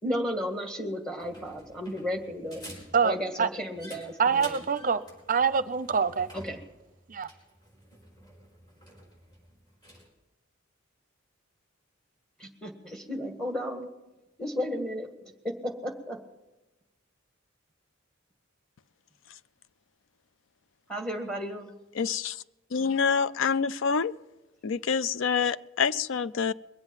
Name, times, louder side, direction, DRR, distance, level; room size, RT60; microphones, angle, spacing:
voice 1, 0.0-2.6 3.0-4.6 6.3-6.6 12.4-13.9 14.4-16.2 20.9-21.7, equal, 5° left, 1.8 m, -34 dB
sound 1, 1.2-10.1, equal, 20° left, 4.7 m, -50 dB
voice 2, 2.9-3.5 4.2-5.0 5.3-6.3 7.1-7.3, right 6 dB, 40° right, 0.6 m, -25 dB
voice 3, 22.0-22.4 22.7-24.1 24.6-26.5, left 6 dB, 65° left, 0.4 m, -27 dB
22.0 x 8.0 x 7.3 m
head